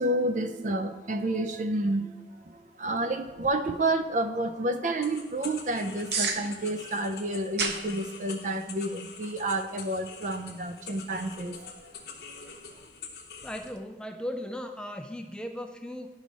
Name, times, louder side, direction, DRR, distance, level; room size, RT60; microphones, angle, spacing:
voice 1, 0.0-12.6, right 1 dB, 45° right, 9 dB, 0.5 m, -30 dB
sound 1, 3.2-13.8, right 4 dB, 70° right, 0.8 m, -40 dB
sound 2, 5.0-13.7, left 5 dB, 60° left, 1.0 m, -45 dB
voice 2, 13.4-16.1, equal, 5° left, 5 dB, 0.4 m, -37 dB
11.0 x 4.8 x 4.0 m, 1.1 s
head